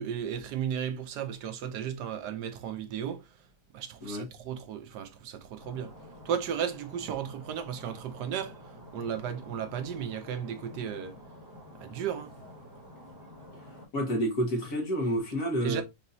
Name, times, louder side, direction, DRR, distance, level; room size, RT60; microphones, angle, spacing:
voice 1, 0.0-3.3 3.7-5.9 6.2-11.2 11.8-12.3 15.6-15.8, right 8 dB, 75° right, 1.2 m, -34 dB
Stream, 5.6-13.9, left 1 dB, 15° right, 1.7 m, -49 dB
voice 2, 13.9-15.8, equal, 60° left, 2.1 m, -29 dB
5.4 x 2.9 x 2.6 m
omnidirectional pair, 1.9 m